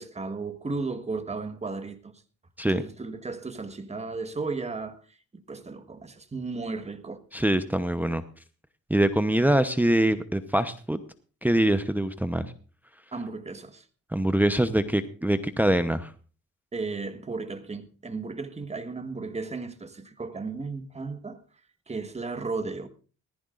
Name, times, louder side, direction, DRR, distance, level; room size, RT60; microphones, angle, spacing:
voice 1, 0.0-2.2 2.7-5.0 5.3-7.2 13.1-13.8 16.7-21.4 21.9-22.9, right 3 dB, 20° right, 1.5 m, -34 dB
voice 2, 7.3-8.2 8.9-11.0 11.4-12.5 14.1-16.1, right 1 dB, 5° right, 0.8 m, -24 dB
19.5 x 14.5 x 2.5 m
cardioid pair, 90°, 30 cm